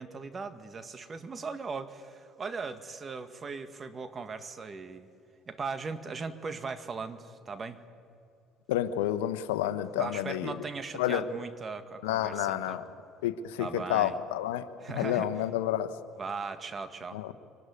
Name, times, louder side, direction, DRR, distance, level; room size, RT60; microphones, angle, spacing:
voice 1, 0.0-5.1 5.5-7.8 10.0-12.8 13.6-14.2 14.8-15.3 16.2-17.2, right 4 dB, 35° right, 9 dB, 1.8 m, -38 dB
voice 2, 8.7-10.5 11.0-11.2 12.0-12.9 13.2-16.0 17.1-17.3, left 12 dB, 85° left, 12 dB, 1.1 m, -30 dB
25.0 x 20.0 x 9.8 m, 2.7 s
hypercardioid pair, 75°, 0 cm